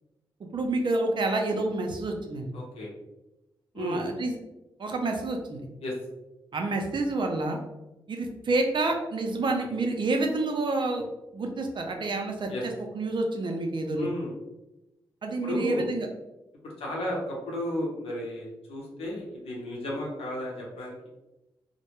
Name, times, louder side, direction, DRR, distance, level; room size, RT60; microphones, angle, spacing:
voice 1, 0.5-2.5 3.7-4.3 4.8-5.6 6.5-7.6 8.1-11.0 11.3-14.1 15.2-16.1, right 2 dB, 55° right, 3 dB, 0.5 m, -28 dB
voice 2, 2.5-2.9 3.7-4.0 5.8-5.9 12.5-12.6 13.9-14.3 15.4-15.9 16.8-21.1, left 1 dB, 80° left, -3 dB, 0.8 m, -33 dB
2.2 x 2.1 x 2.9 m, 0.97 s
supercardioid pair, 45°, 10 cm